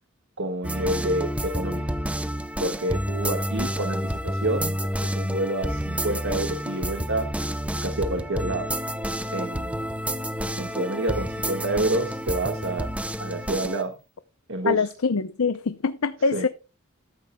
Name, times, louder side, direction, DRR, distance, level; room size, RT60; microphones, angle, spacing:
voice 1, 0.4-1.8 2.6-7.3 7.8-8.7 9.3-9.8 10.6-12.9 13.2-13.9 14.5-14.8 16.3-16.5, right 1 dB, 65° right, 1.6 m, -28 dB
sound 1, 0.6-13.8, equal, 5° right, 0.8 m, -29 dB
voice 2, 14.7-16.5, left 4 dB, 90° left, 0.7 m, -24 dB
14.0 x 12.5 x 2.2 m
head